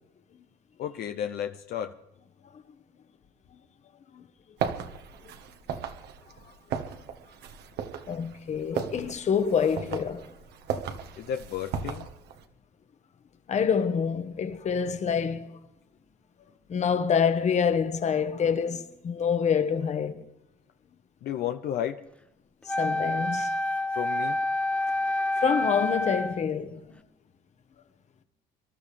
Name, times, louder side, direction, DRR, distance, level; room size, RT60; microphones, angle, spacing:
voice 1, 0.8-1.9 11.2-12.1 21.2-22.0 23.9-24.4, left 10 dB, 70° left, 0.8 m, -32 dB
sound 1, 4.6-12.4, right 7 dB, 75° right, 1.4 m, -36 dB
voice 2, 8.1-10.3 13.5-15.6 16.7-20.2 22.6-23.5 25.4-27.0, left 7 dB, 45° left, 1.3 m, -27 dB
Wind instrument woodwind instrument, 22.7-26.5, left 1 dB, 5° left, 0.6 m, -28 dB
25.5 x 12.5 x 3.4 m
cardioid pair, 110°, 17 cm